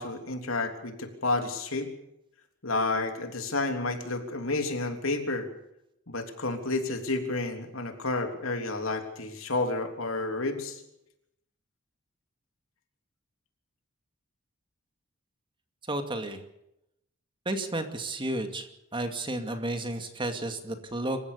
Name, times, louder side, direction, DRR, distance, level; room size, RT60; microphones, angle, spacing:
voice 1, 0.0-1.9 2.6-5.5 6.1-10.8, left 2 dB, 70° left, 5 dB, 3.4 m, -30 dB
voice 2, 15.9-16.4 17.5-18.7 18.9-21.2, right 1 dB, 25° right, 6 dB, 2.3 m, -32 dB
27.0 x 15.5 x 6.9 m, 0.82 s
head